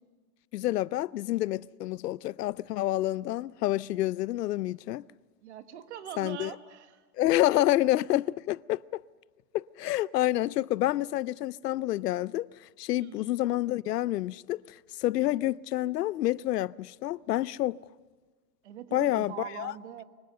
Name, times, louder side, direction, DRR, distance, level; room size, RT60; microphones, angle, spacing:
voice 1, 0.5-5.0 6.2-6.5 7.2-9.0 9.5-12.5 12.8-17.8 18.9-19.7, left 15 dB, 80° left, 0.6 m, -28 dB
voice 2, 5.4-7.0 7.6-7.7 12.9-13.3 18.6-20.0, right 9 dB, 45° right, 1.6 m, -42 dB
25.0 x 23.5 x 6.7 m
supercardioid pair, 175°, 47 cm